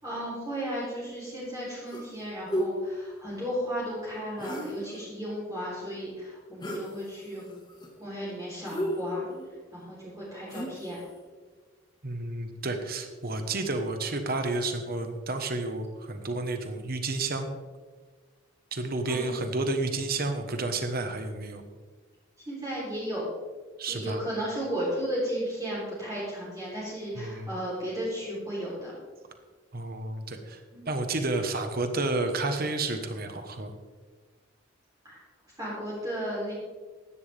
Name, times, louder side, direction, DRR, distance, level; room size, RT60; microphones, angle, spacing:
voice 1, 0.0-7.4 8.0-9.3 9.7-11.0 19.1-19.3 22.5-23.3 23.9-28.9 30.7-30.9 35.0-35.2 35.6-36.5, equal, 20° right, -8 dB, 3.7 m, -34 dB
sound 1, 1.9-2.2 2.5-2.7 4.4-5.0 6.6-6.9 7.3-7.9 8.6-9.5 10.5-11.0, equal, 20° left, 1.7 m, -33 dB
voice 2, 12.0-17.5 18.7-21.6 23.8-24.2 27.2-27.5 29.7-30.6 30.9-33.7, right 2 dB, 50° right, 6 dB, 1.2 m, -31 dB
15.0 x 11.5 x 3.5 m, 1.4 s
head